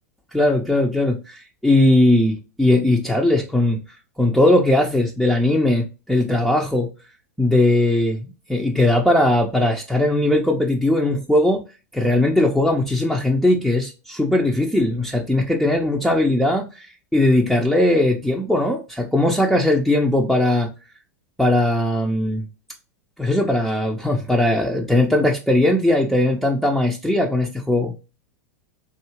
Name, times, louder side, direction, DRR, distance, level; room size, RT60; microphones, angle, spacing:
voice 1, 0.3-3.8 4.2-6.9 7.4-11.6 11.9-16.9 17.1-20.7 21.4-22.5 23.2-27.9, left 1 dB, ahead, 0.5 m, -19 dB
3.6 x 2.7 x 3.0 m
hypercardioid pair, 100°, 8 cm